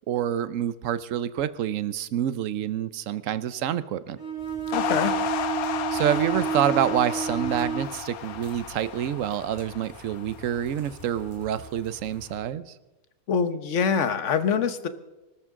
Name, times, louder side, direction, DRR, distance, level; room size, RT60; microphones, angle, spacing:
voice 1, 0.1-4.2 5.9-12.7, right 10 dB, 65° right, 14 dB, 1.1 m, -27 dB
Bowed string instrument, 4.2-8.0, right 7 dB, 15° right, 2.6 m, -30 dB
sound 1, 4.4-12.4, equal, 20° left, 4.2 m, -49 dB
sound 2, 4.7-11.2, left 10 dB, 85° left, 1.3 m, -33 dB
voice 2, 4.7-5.1 13.3-14.9, left 6 dB, 60° left, 11 dB, 1.3 m, -24 dB
25.0 x 13.5 x 3.7 m, 1.1 s
omnidirectional pair, 1.5 m